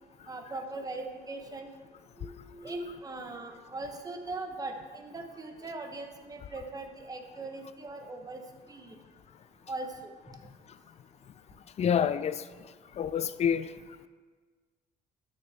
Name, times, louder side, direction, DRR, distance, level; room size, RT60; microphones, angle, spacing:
voice 1, 0.3-1.7 2.2-8.4 8.7-8.9 9.7-10.3, right 2 dB, 20° right, 1.1 m, -40 dB
voice 2, 11.8-12.4 13.0-13.7, left 8 dB, 40° left, 0.4 m, -27 dB
12.5 x 6.5 x 3.5 m
cardioid pair, 110°, 17 cm